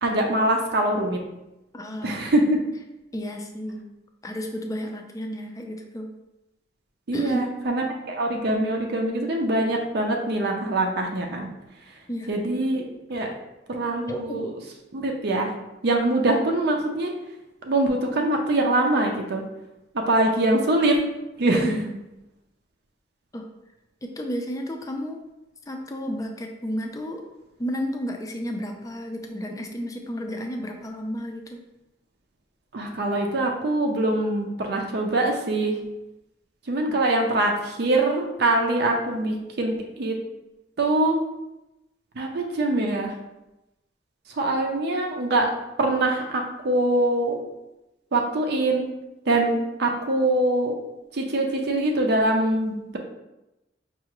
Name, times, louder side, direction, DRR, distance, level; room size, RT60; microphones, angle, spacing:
voice 1, 0.0-1.2 2.0-2.6 7.1-11.5 12.3-12.8 13.1-13.3 13.7-14.5 14.9-15.5 15.8-17.1 17.6-19.4 19.9-21.0 21.4-21.7 32.7-35.7 36.7-40.2 40.8-41.2 42.2-43.1 44.4-45.5 45.8-47.4 48.1-48.9 49.3-50.7 51.1-53.0, right 2 dB, 65° right, 2 dB, 0.5 m, -23 dB
voice 2, 1.7-2.3 3.1-3.8 4.2-6.1 7.1-7.4 12.1-12.3 14.1-14.5 21.6-21.9 23.3-23.4 24.0-25.2 25.7-27.2 27.6-31.6, equal, 20° left, 3 dB, 0.4 m, -32 dB
4.6 x 2.4 x 2.9 m, 0.95 s
head